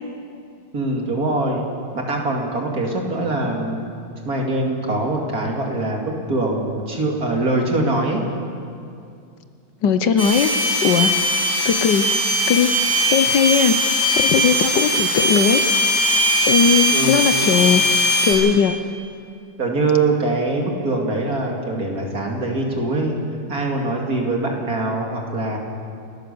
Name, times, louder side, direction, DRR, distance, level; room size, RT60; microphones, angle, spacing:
voice 1, 0.7-1.6 1.9-3.8 4.2-8.2 16.9-17.3 19.6-23.2 23.5-25.6, right 2 dB, 50° right, 1 dB, 3.0 m, -23 dB
voice 2, 9.8-10.5 10.8-11.1 11.6-12.0 12.5-12.7 13.1-13.8 14.2-15.7 16.4-17.8 18.2-18.8, left 7 dB, 70° left, 10 dB, 1.4 m, -18 dB
sound 1, 10.2-18.3, equal, 15° right, 7.0 m, -19 dB
29.5 x 13.5 x 6.9 m, 2.4 s
omnidirectional pair, 2.1 m